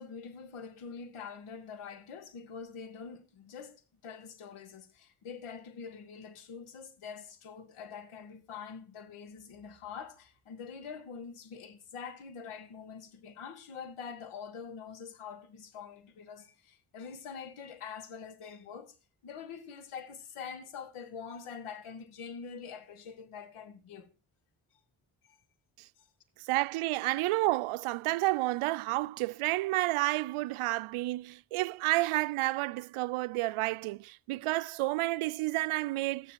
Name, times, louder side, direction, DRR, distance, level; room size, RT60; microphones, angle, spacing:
voice 1, 0.0-19.0 19.2-24.1 25.3-25.4 26.0-26.1, left 6 dB, 80° left, 2.1 m, -45 dB
voice 2, 26.4-36.3, right 19 dB, 80° right, 0.6 m, -30 dB
14.0 x 10.0 x 4.5 m
supercardioid pair, 40°, 49 cm